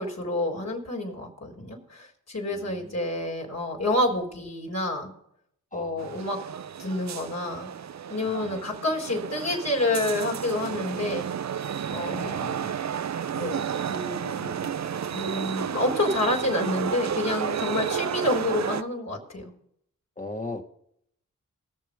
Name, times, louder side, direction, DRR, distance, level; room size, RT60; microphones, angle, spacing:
voice 1, 0.0-5.1 5.7-6.4 6.8-7.7 8.1-11.3 11.9-12.5 13.3-14.7 15.1-19.5, left 2 dB, 45° left, -1 dB, 4.3 m, -28 dB
voice 2, 2.5-2.9 5.7-6.3 8.2-8.6 12.2-12.7 20.2-20.6, left 2 dB, 20° left, 5 dB, 2.3 m, -39 dB
sound 1, 6.0-18.8, right 8 dB, 50° right, 0.7 m, -32 dB
20.0 x 6.8 x 5.3 m, 0.70 s
supercardioid pair, 40°, 34 cm